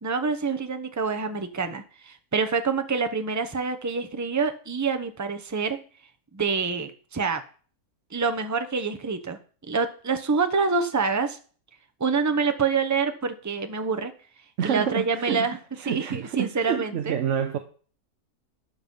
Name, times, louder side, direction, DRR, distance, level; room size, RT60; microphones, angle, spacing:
voice 1, 0.0-5.8 6.3-7.4 8.1-9.4 9.7-11.4 12.0-14.1 14.6-15.6 15.8-17.2, right 5 dB, 15° right, 8 dB, 0.6 m, -26 dB
voice 2, 14.6-17.6, right 9 dB, 60° right, 7 dB, 1.0 m, -28 dB
12.0 x 6.0 x 5.5 m, 0.42 s
omnidirectional pair, 1.6 m